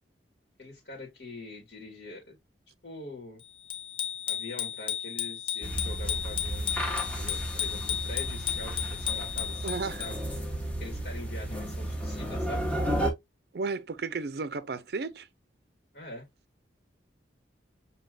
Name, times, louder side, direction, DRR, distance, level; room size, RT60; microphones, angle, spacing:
voice 1, 0.6-2.4 2.8-3.4 4.3-6.8 7.1-10.2 10.8-12.7 15.9-16.3, left 2 dB, 70° left, 1.7 m, -44 dB
Bicycle bell, 3.7-10.4, left 9 dB, 30° left, 0.6 m, -34 dB
sound 1, 5.6-13.1, right 1 dB, 10° left, 0.9 m, -33 dB
voice 2, 9.6-10.0 13.5-15.3, right 4 dB, 60° right, 0.5 m, -33 dB
6.3 x 2.8 x 2.3 m
head